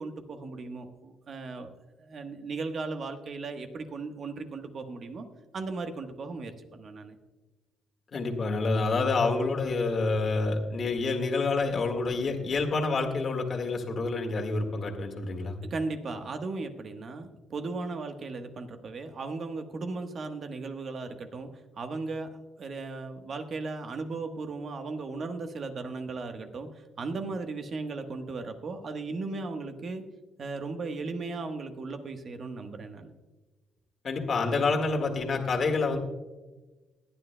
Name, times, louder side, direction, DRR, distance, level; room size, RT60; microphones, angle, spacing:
voice 1, 0.0-1.7 2.0-5.3 5.5-7.2 15.7-22.3 22.6-30.0 30.4-33.1, right 3 dB, 50° right, 7 dB, 1.2 m, -36 dB
voice 2, 8.1-15.6 34.0-36.0, left 3 dB, 50° left, 2 dB, 1.7 m, -28 dB
21.0 x 9.9 x 2.2 m, 1.1 s
cardioid pair, 90°, 0 cm